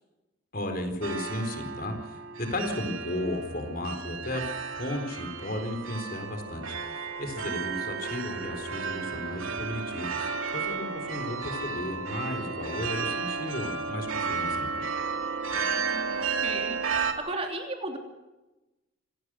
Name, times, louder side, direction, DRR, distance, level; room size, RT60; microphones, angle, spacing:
voice 1, 0.5-4.5 4.7-14.9, left 1 dB, 45° left, 6 dB, 4.3 m, -34 dB
sound 1, 1.0-17.1, right 5 dB, 85° right, 2.7 m, -33 dB
voice 2, 7.5-7.9 15.5-18.0, right 2 dB, 30° right, 3 dB, 3.1 m, -37 dB
26.0 x 18.5 x 6.3 m, 1.0 s
head